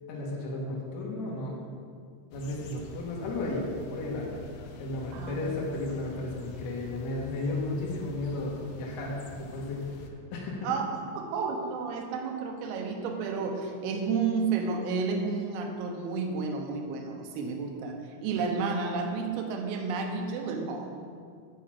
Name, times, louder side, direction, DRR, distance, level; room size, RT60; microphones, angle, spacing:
voice 1, 0.1-1.6 2.3-3.7 3.9-4.3 4.8-10.0 10.3-10.7, left 2 dB, 60° left, -4 dB, 1.9 m, -34 dB
sound 1, 2.3-10.1, left 4 dB, 85° left, 2.0 m, -46 dB
voice 2, 10.6-21.0, right 4 dB, 75° right, 3 dB, 2.6 m, -31 dB
9.4 x 4.9 x 7.5 m, 2.2 s
omnidirectional pair, 5.1 m